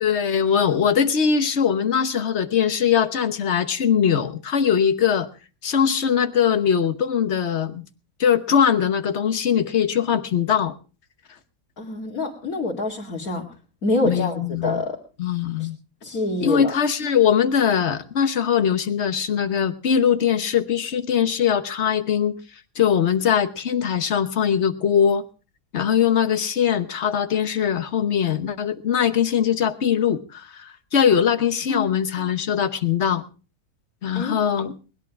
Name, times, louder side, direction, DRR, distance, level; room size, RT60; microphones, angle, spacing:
voice 1, 0.0-5.3 5.6-7.8 8.2-10.7 14.0-14.8 15.2-15.8 16.4-22.4 22.7-25.2 25.7-33.2 34.0-34.8, left 8 dB, 55° left, 11 dB, 1.3 m, -21 dB
voice 2, 11.8-13.4 13.8-14.9 15.6-15.7 16.0-16.7 31.7-31.9 34.1-34.4, left 2 dB, 85° left, -3 dB, 2.8 m, -26 dB
20.5 x 11.0 x 4.8 m, 0.36 s
omnidirectional pair, 1.5 m